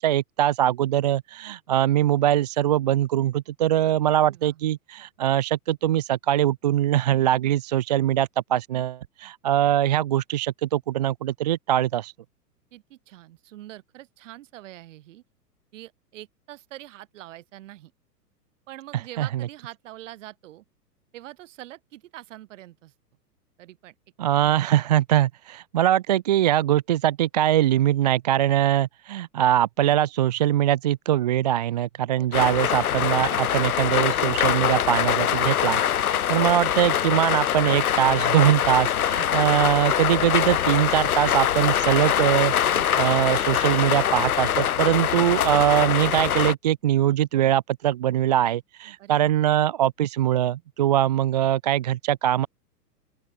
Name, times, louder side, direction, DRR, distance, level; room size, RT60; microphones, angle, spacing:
voice 1, 0.0-12.1 19.2-19.3 24.2-35.8 36.1-52.5, right 12 dB, 30° right, 0.4 m, -22 dB
voice 2, 4.3-4.6 12.7-15.2 15.7-17.9 18.7-20.6 21.1-22.9 23.6-23.9 24.4-24.8 32.2-32.4 49.0-49.4, right 15 dB, 50° right, 6.5 m, -44 dB
sound 1, 32.3-46.5, left 10 dB, 60° left, 1.5 m, -23 dB
open air
figure-of-eight pair, 110°, 48 cm